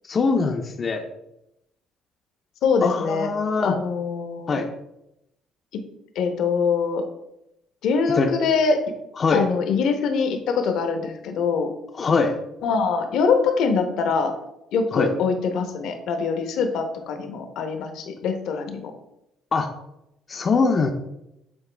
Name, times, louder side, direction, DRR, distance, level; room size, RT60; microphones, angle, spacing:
voice 1, 0.0-1.0 2.8-3.8 4.5-4.7 8.1-8.3 9.2-9.4 11.9-12.4 14.9-15.1 19.5-19.7 20.3-20.9, left 4 dB, 30° left, 4 dB, 0.5 m, -22 dB
voice 2, 2.6-3.3 3.6-4.6 5.7-5.8 6.1-7.0 7.8-8.8 9.3-11.7 12.6-14.3 14.7-18.9, left 5 dB, 70° left, 6 dB, 0.9 m, -23 dB
7.2 x 4.0 x 3.3 m, 0.86 s
cardioid pair, 135°, 0 cm